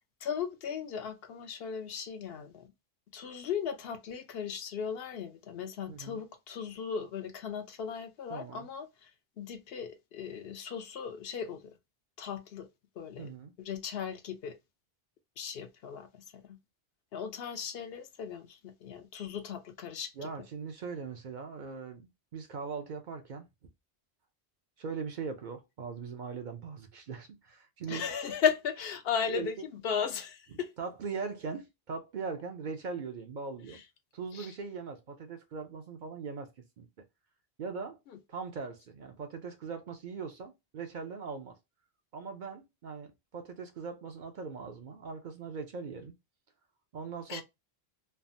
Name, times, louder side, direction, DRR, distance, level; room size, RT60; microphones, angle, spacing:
voice 1, 0.2-2.7 3.1-9.1 9.4-11.7 12.2-12.7 13.0-13.3 13.6-14.6 15.4-16.6 17.1-20.3 27.9-30.7 33.7-33.8 34.3-34.5 38.1-38.2 47.3-47.4, left 7 dB, 70° left, 0.8 m, -36 dB
voice 2, 5.9-6.2 8.3-8.7 13.2-13.5 20.2-23.5 24.8-28.1 29.3-29.6 30.5-33.8 34.1-37.0 37.6-38.0 38.3-41.6 42.1-46.2 46.9-47.4, right 5 dB, 55° right, 0.6 m, -40 dB
3.3 x 2.0 x 2.5 m
omnidirectional pair, 1.1 m